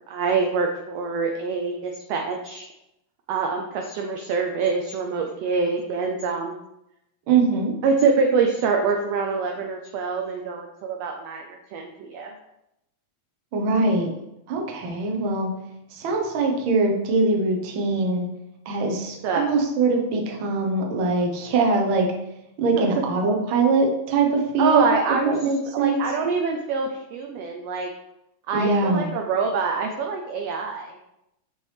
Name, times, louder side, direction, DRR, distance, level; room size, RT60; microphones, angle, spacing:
voice 1, 0.1-2.6 3.3-6.5 7.8-12.3 19.2-19.4 22.8-22.9 24.6-25.4 25.7-27.9 28.5-31.0, right 4 dB, 80° right, 3 dB, 1.5 m, -25 dB
voice 2, 7.3-7.7 13.5-14.1 14.5-15.5 15.9-18.3 18.6-22.1 22.6-24.9 25.3-26.0 28.5-29.1, right 3 dB, 60° right, 1 dB, 1.4 m, -22 dB
6.8 x 4.8 x 3.3 m, 0.86 s
omnidirectional pair, 3.4 m